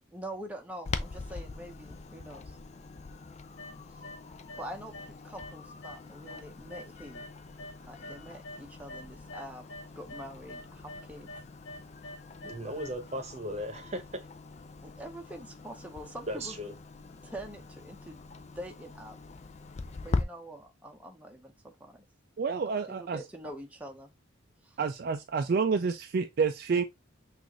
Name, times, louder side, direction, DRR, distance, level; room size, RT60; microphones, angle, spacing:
voice 1, 0.1-2.6 3.9-4.1 4.6-7.2 7.8-9.7 9.9-11.3 14.8-16.6 17.2-18.2 18.6-19.2 20.0-22.0 22.6-24.1 24.6-24.8, right 1 dB, 5° right, 0.7 m, -45 dB
Clock, 0.8-20.2, left 3 dB, 35° left, 0.4 m, -42 dB
sound 1, 3.6-4.2 4.5-5.1 5.4-8.6 8.9-12.9, left 1 dB, 70° left, 1.2 m, -45 dB
voice 2, 12.4-14.0 16.3-16.7, equal, 35° right, 0.9 m, -36 dB
voice 3, 22.4-23.2 24.8-26.8, right 5 dB, 50° right, 0.4 m, -28 dB
6.1 x 2.5 x 3.0 m
head